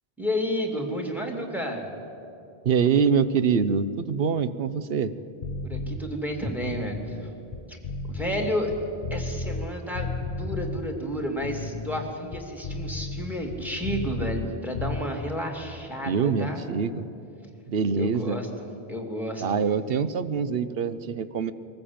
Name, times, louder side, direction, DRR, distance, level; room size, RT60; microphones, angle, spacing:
voice 1, 0.2-1.9 5.6-7.0 8.1-8.7 9.1-16.6 18.0-18.5 18.9-19.7, equal, ahead, 2 dB, 2.5 m, -31 dB
voice 2, 2.6-5.1 16.1-17.0 17.7-18.4 19.4-21.5, right 6 dB, 70° right, 13 dB, 1.0 m, -24 dB
sound 1, 5.4-6.0 6.5-9.7 10.0-10.8 11.3-14.5 14.8-15.0, left 3 dB, 60° left, 1.0 m, -33 dB
22.5 x 14.0 x 8.7 m, 2.7 s
omnidirectional pair, 1.1 m